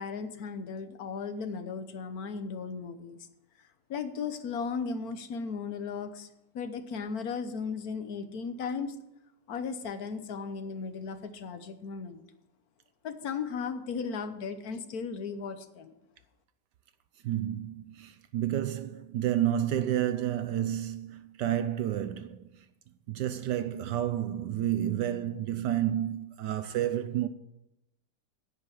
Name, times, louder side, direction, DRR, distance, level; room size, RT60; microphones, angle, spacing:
voice 1, 0.0-3.2 3.9-6.3 6.5-8.9 9.5-12.2 13.0-15.9, left 5 dB, 60° left, 1.3 m, -36 dB
voice 2, 17.2-22.5 23.1-27.3, right 11 dB, 75° right, 1.2 m, -30 dB
10.0 x 9.1 x 6.9 m
omnidirectional pair, 2.0 m